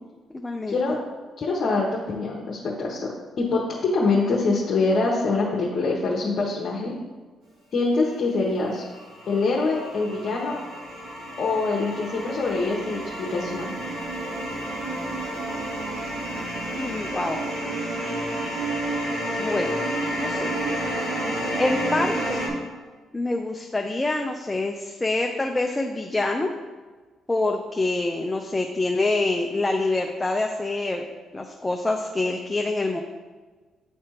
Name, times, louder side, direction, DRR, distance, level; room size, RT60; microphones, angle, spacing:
voice 1, 0.4-1.0 16.8-17.4 18.0-18.3 19.4-19.8 20.2-20.5 21.6-22.4 23.1-26.5 27.3-31.0 31.3-33.0, left 2 dB, 15° left, 2 dB, 0.5 m, -26 dB
voice 2, 1.4-3.1 3.4-6.9 7.7-8.8 9.3-10.5 11.4-13.7, left 3 dB, 60° left, -4 dB, 1.0 m, -24 dB
sound 1, 8.7-22.5, right 1 dB, 75° right, 1.7 m, -30 dB
9.5 x 3.4 x 2.9 m, 1.4 s
cardioid pair, 90°, 0 cm